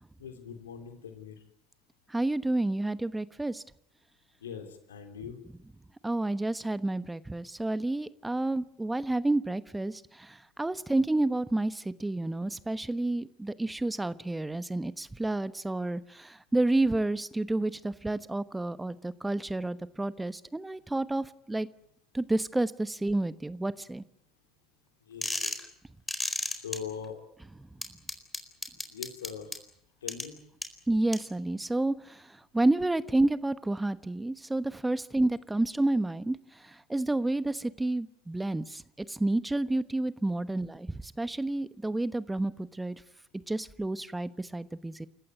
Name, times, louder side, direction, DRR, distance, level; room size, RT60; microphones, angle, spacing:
voice 1, 0.2-1.3 4.4-5.4 25.1-25.5 26.5-27.2 28.9-29.5 30.0-30.4, left 7 dB, 85° left, 7 dB, 3.2 m, -41 dB
voice 2, 2.1-3.6 6.0-21.7 22.1-24.0 30.9-38.8 39.1-43.0 43.5-45.1, right 2 dB, 10° right, 15 dB, 1.1 m, -30 dB
sound 1, 25.2-25.6 26.1-26.8 27.8-29.6 30.1-30.2 30.6-30.7 31.1-31.2, left 2 dB, 10° left, 4.4 m, -32 dB
28.5 x 15.0 x 9.5 m, 0.72 s
hypercardioid pair, 65°, 0 cm